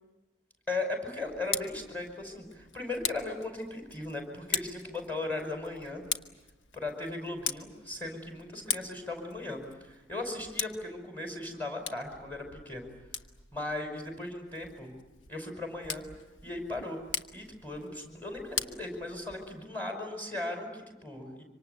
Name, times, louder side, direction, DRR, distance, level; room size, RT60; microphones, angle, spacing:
voice 1, 0.7-6.0 6.7-12.9 13.5-14.9 15.3-16.0 16.4-17.0 17.3-21.4, left 2 dB, 10° left, 3 dB, 5.5 m, -37 dB
Tick, 1.2-19.6, left 7 dB, 85° left, 1.2 m, -41 dB
25.5 x 25.5 x 8.2 m, 1.1 s
head